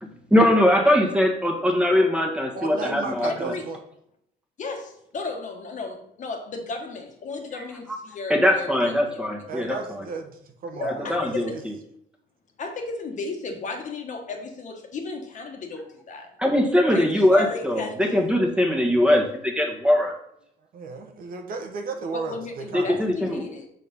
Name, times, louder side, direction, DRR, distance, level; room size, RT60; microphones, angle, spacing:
voice 1, 0.0-3.5 7.5-8.0 8.3-10.0 10.8-11.7 16.4-20.1 22.7-23.5, left 1 dB, 5° right, 2 dB, 1.5 m, -21 dB
voice 2, 2.5-3.8 9.5-11.6 20.7-23.0, right 4 dB, 55° right, 5 dB, 1.2 m, -34 dB
voice 3, 3.2-3.6 4.6-9.2 10.7-11.6 12.6-16.3 16.9-18.0 22.1-23.7, left 3 dB, 45° left, 4 dB, 1.4 m, -34 dB
6.4 x 4.3 x 5.4 m, 0.73 s
cardioid pair, 110°, 17 cm